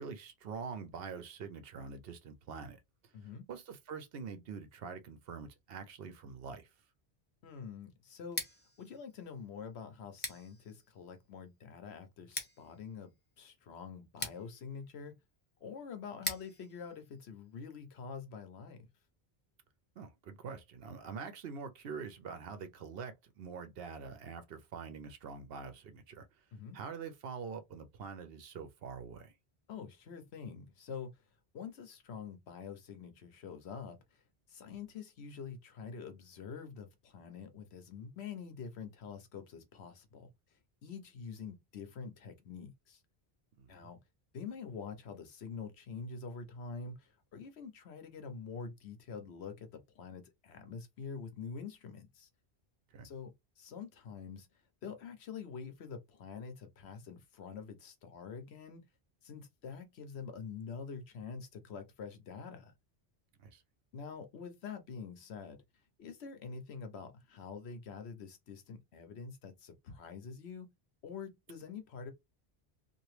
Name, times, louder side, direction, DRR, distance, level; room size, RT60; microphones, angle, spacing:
voice 1, 0.0-3.1 3.5-6.7 20.0-26.3 26.7-29.3 34.6-34.7 43.6-43.9 52.9-53.1 63.4-63.6, right 5 dB, 70° right, 0.8 m, -45 dB
voice 2, 3.1-3.5 7.4-8.4 8.8-15.1 15.6-18.9 26.5-26.8 29.7-31.1 31.5-34.0 34.5-40.3 40.8-43.0 43.7-44.0 44.3-52.3 53.0-54.5 54.8-58.8 59.2-62.7 63.9-65.6 66.0-70.7 71.0-72.1, left 5 dB, 80° left, 1.0 m, -46 dB
Scissors, 8.2-18.0, left 1 dB, 10° left, 0.7 m, -46 dB
2.9 x 2.5 x 3.1 m
omnidirectional pair, 1.1 m